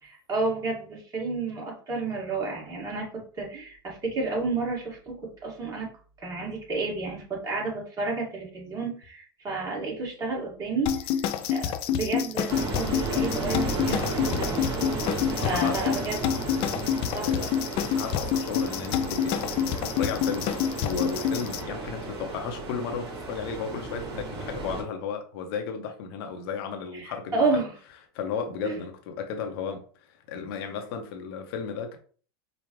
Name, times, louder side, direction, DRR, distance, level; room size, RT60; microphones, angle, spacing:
voice 1, 0.0-3.1 3.4-5.9 6.2-10.9 11.5-14.6 15.3-16.2 17.1-17.5 26.9-27.7 28.6-28.7, right 3 dB, 25° right, 2.0 m, -31 dB
sound 1, 10.9-21.6, left 9 dB, 45° left, 0.5 m, -28 dB
sound 2, 12.5-24.8, right 2 dB, 45° right, 2.1 m, -33 dB
voice 2, 15.4-16.1 17.2-17.4 17.9-20.5 20.8-27.4 28.1-32.0, left 6 dB, 65° left, 0.9 m, -34 dB
5.1 x 2.4 x 3.1 m
hypercardioid pair, 110°, 13 cm